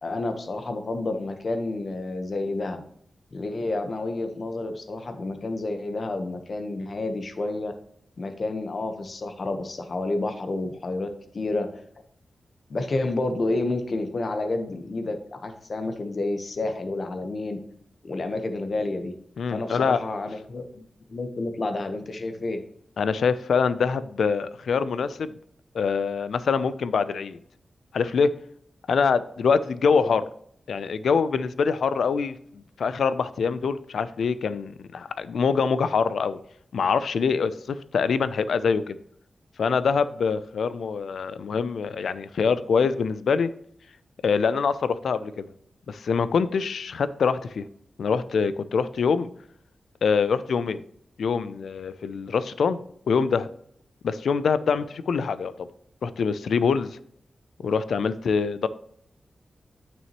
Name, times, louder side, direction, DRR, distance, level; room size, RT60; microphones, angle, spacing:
voice 1, 0.0-2.8 3.3-7.7 8.2-11.1 11.3-11.7 12.7-17.6 18.0-19.1 19.5-20.8 21.1-22.6, left 2 dB, 50° left, 7 dB, 1.0 m, -29 dB
voice 2, 19.4-20.0 23.0-25.3 25.7-27.4 27.9-28.3 28.9-30.3 30.7-32.3 32.8-36.4 36.7-39.0 39.6-43.5 44.2-45.5 45.9-47.7 48.0-49.3 50.0-50.8 51.2-52.8 53.1-53.5 54.0-55.5 56.0-57.0 57.6-58.7, left 5 dB, 85° left, 14 dB, 0.4 m, -24 dB
9.4 x 6.1 x 3.0 m, 0.67 s
wide cardioid pair, 105°, 0 cm